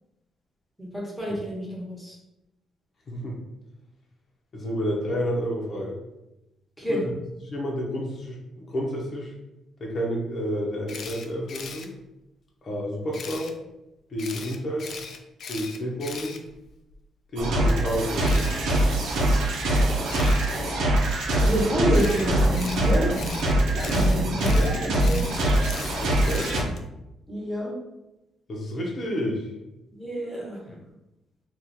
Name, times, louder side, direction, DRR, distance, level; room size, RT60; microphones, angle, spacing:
voice 1, 0.8-2.2 6.8-7.0 21.3-23.1 23.9-25.3 27.3-27.7 29.9-30.8, equal, ahead, -5 dB, 1.3 m, -28 dB
voice 2, 3.1-3.4 4.5-6.0 6.9-7.0 7.5-9.3 9.8-11.9 12.6-13.5 14.1-14.9 15.5-16.4 17.3-18.5 26.0-26.5 28.5-29.5, equal, 45° left, -1 dB, 0.9 m, -30 dB
Camera, 10.9-11.9 13.1-13.5 14.2-17.0 18.2-18.6 20.1-20.5 21.9-26.9, left 5 dB, 60° left, 0.4 m, -39 dB
sound 1, 17.4-26.6, right 1 dB, 80° right, 0.7 m, -23 dB
2.9 x 2.5 x 3.8 m, 0.93 s
cardioid pair, 90°, 0 cm